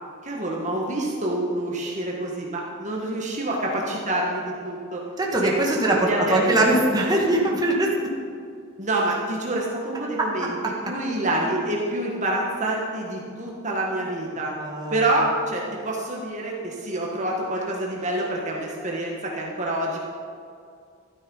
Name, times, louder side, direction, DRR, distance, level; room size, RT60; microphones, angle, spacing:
voice 1, 0.2-5.0 5.4-6.8 8.8-10.6 10.8-14.5 14.9-20.0, right 1 dB, 35° right, -2 dB, 1.7 m, -27 dB
voice 2, 5.2-7.9 14.6-15.0, right 1 dB, 20° right, -2 dB, 2.0 m, -21 dB
13.0 x 12.5 x 5.5 m, 2.3 s
head